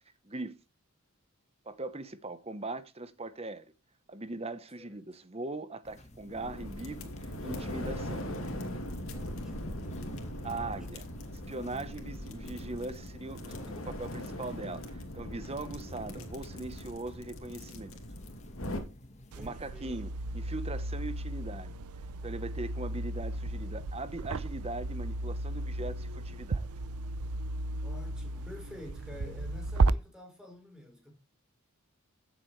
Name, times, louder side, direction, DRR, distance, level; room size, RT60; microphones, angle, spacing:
voice 1, 0.2-0.6 1.6-3.6 4.1-8.3 10.4-11.0 11.5-18.0 19.4-21.7 22.2-26.7, right 2 dB, 25° right, 1.0 m, -40 dB
sound 1, 5.8-19.5, left 1 dB, 30° left, 1.4 m, -53 dB
sound 2, 6.3-18.8, left 1 dB, 65° left, 2.7 m, -40 dB
voice 2, 9.1-9.7 10.5-11.0 19.3-20.0 27.8-31.1, left 1 dB, 5° right, 3.9 m, -49 dB
sound 3, 19.3-29.9, right 2 dB, 85° right, 0.6 m, -34 dB
15.5 x 8.2 x 3.2 m
head